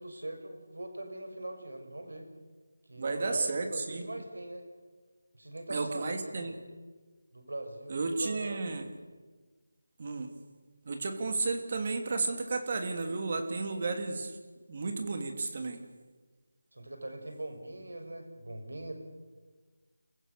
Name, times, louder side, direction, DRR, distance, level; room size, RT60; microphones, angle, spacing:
voice 1, 0.0-2.3 2.9-4.7 5.3-6.5 7.3-8.6 16.7-18.9, right 1 dB, 85° right, 5 dB, 5.9 m, -41 dB
voice 2, 3.0-4.0 5.7-6.6 7.9-8.9 10.0-10.3 10.8-14.3 14.7-15.8, right 3 dB, 40° right, 6 dB, 2.9 m, -33 dB
29.5 x 16.0 x 6.9 m, 1.4 s
figure-of-eight pair, 165°, 0 cm